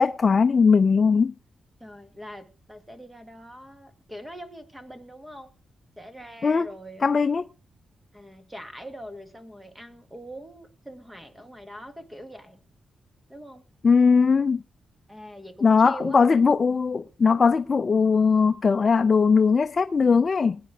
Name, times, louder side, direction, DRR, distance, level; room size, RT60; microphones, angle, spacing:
voice 1, 0.0-1.3 6.4-6.7 7.0-7.4 13.8-14.6 15.6-20.6, left 5 dB, 35° left, 0.5 m, -19 dB
voice 2, 1.8-5.5 6.0-7.1 8.1-12.6 13.3-13.6 15.1-16.2, equal, 10° right, 1.9 m, -43 dB
21.0 x 9.5 x 3.7 m
cardioid pair, 120°, 0 cm